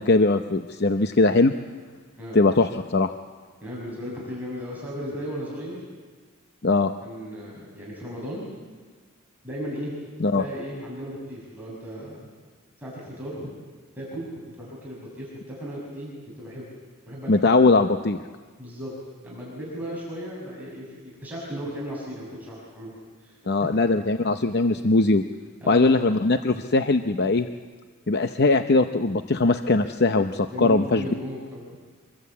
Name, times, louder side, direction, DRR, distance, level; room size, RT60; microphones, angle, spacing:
voice 1, 0.0-1.5 2.3-3.1 6.6-6.9 10.2-10.4 17.3-18.2 23.5-25.2 25.7-27.5 28.1-31.1, left 3 dB, 45° left, 8 dB, 0.7 m, -20 dB
voice 2, 3.6-5.8 7.0-8.5 9.4-9.9 10.3-12.3 12.8-13.5 13.9-16.7 17.1-17.3 18.6-18.9 19.2-22.9 23.2-23.7 25.6-25.9 30.5-31.8, equal, 10° right, -5 dB, 6.0 m, -36 dB
25.0 x 22.5 x 8.4 m, 1.5 s
head